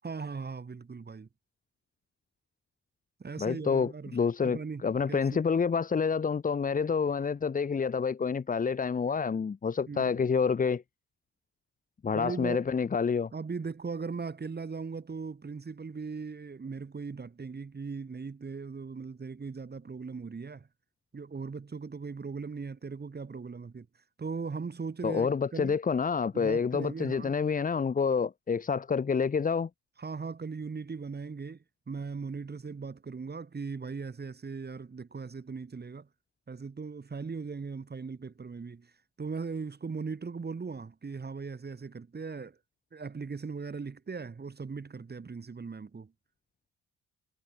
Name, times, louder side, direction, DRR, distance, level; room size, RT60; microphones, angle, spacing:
voice 1, 0.0-1.3 3.2-4.2 4.4-5.4 9.9-10.3 12.1-12.7 13.3-20.7 21.1-23.9 24.2-25.8 26.3-27.3 30.0-36.1 36.5-38.9 39.2-42.6 42.9-46.1, right 5 dB, 35° right, 6.7 m, -39 dB
voice 2, 3.4-10.8 12.0-13.3 25.0-29.7, left 5 dB, 25° left, 0.9 m, -28 dB
cardioid pair, 90°, 30 cm